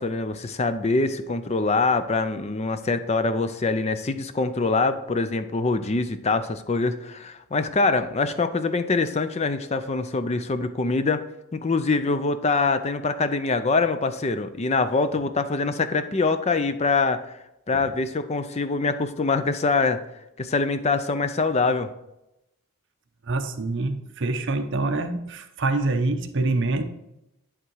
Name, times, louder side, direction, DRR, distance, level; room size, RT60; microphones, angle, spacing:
voice 1, 0.0-11.2 11.5-17.2 17.7-20.0 20.4-21.9, left 3 dB, 30° left, 10 dB, 0.5 m, -24 dB
voice 2, 23.2-26.8, right 2 dB, 55° right, 6 dB, 0.8 m, -26 dB
11.0 x 3.7 x 4.6 m, 0.89 s
head